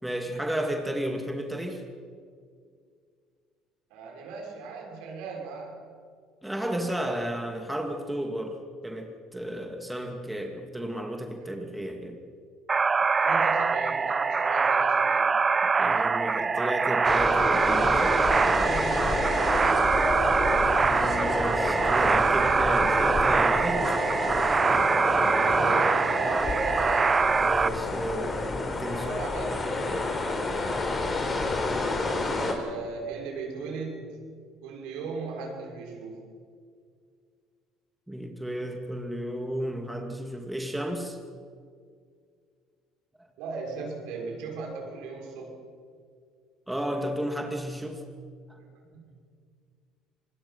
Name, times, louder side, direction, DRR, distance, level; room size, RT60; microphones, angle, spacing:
voice 1, 0.0-1.8 6.4-12.2 15.6-18.7 20.8-24.0 27.4-29.2 38.1-41.2 46.7-48.0, right 1 dB, 5° right, 3 dB, 2.7 m, -33 dB
voice 2, 3.9-5.7 13.2-15.3 18.4-20.6 25.6-27.2 29.0-29.9 32.3-34.2 34.6-36.2 43.4-45.6 48.6-49.1, right 3 dB, 75° right, 0 dB, 6.0 m, -37 dB
sound 1, 12.7-27.7, right 4 dB, 30° right, 0.9 m, -24 dB
sound 2, 17.0-32.5, left 2 dB, 30° left, 4.4 m, -29 dB
25.5 x 20.5 x 5.9 m, 2.1 s
hypercardioid pair, 70°, 0 cm